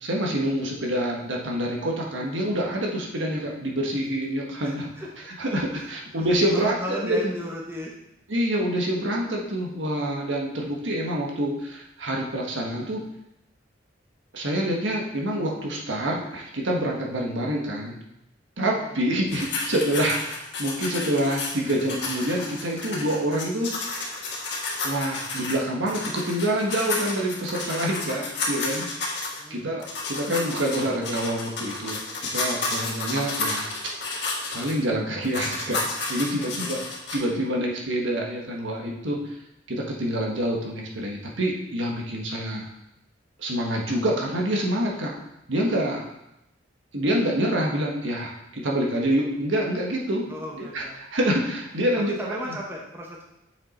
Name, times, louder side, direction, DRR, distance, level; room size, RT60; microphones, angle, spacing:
voice 1, 0.0-4.9 5.4-6.7 7.0-7.3 8.3-13.0 14.3-18.0 18.6-23.7 24.8-29.2 29.5-33.7 34.1-34.2 34.5-36.8 37.1-39.2 39.7-42.7 43.4-45.1 45.5-46.0 46.9-50.2 50.5-50.8 51.1-52.6, right 1 dB, 80° right, -2 dB, 1.4 m, -26 dB
voice 2, 4.6-5.1 5.8-5.9 6.5-7.9 18.8-19.0 29.4-29.7 36.4-36.8 50.3-51.0 52.0-53.2, left 1 dB, 10° right, -2 dB, 0.9 m, -35 dB
sound 1, 19.3-25.6 25.9-29.4 29.8-34.7 35.2-37.2, left 3 dB, 60° left, 1.5 m, -31 dB
7.0 x 5.4 x 4.2 m, 0.84 s
head